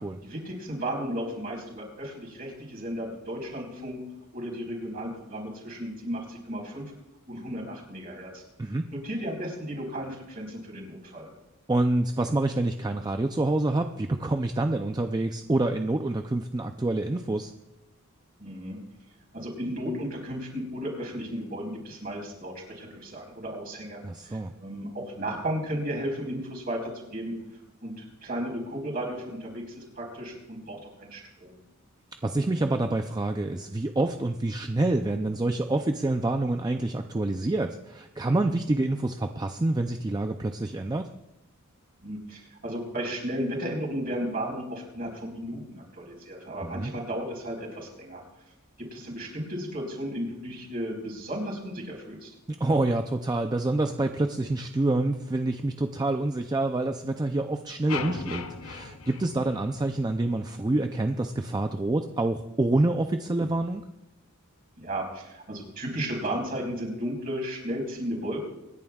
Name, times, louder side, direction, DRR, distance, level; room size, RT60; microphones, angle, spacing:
voice 1, 0.2-4.0 4.3-6.9 7.3-8.4 9.0-11.3 18.4-18.8 19.3-27.3 27.8-31.6 42.0-48.2 48.8-52.3 64.8-68.4, equal, 45° right, 0 dB, 4.4 m, -34 dB
voice 2, 11.7-17.5 24.0-24.5 32.2-41.1 46.6-46.9 52.5-63.9, right 2 dB, 20° right, 6 dB, 0.4 m, -27 dB
sound 1, 57.9-60.2, left 5 dB, 75° left, 0.8 m, -37 dB
25.5 x 10.5 x 2.4 m, 0.94 s
head